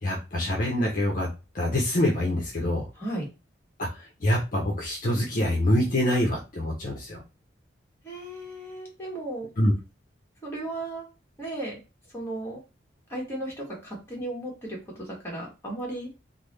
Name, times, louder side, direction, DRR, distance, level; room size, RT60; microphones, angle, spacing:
voice 1, 0.0-2.9 3.8-7.2 9.6-9.7, left 1 dB, 45° left, -2 dB, 0.7 m, -25 dB
voice 2, 3.0-3.3 8.0-9.5 10.4-11.1 11.4-11.7 12.1-12.6 13.1-16.1, right 1 dB, 15° left, -3 dB, 1.3 m, -35 dB
3.5 x 2.1 x 3.2 m, 0.28 s
head